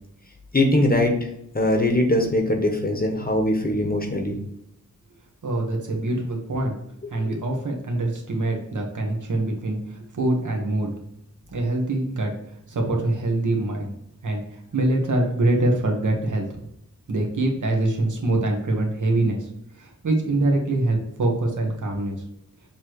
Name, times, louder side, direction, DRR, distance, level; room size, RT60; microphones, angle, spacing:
voice 1, 0.5-1.3 1.5-4.4, left 1 dB, 25° left, 3 dB, 1.1 m, -21 dB
voice 2, 5.4-6.7 7.1-10.9 11.5-12.3 12.7-13.9 14.2-16.5 17.1-19.5 19.8-22.2, right 2 dB, 65° right, 1 dB, 1.5 m, -24 dB
7.1 x 3.1 x 4.7 m, 0.77 s
wide cardioid pair, 125°, 33 cm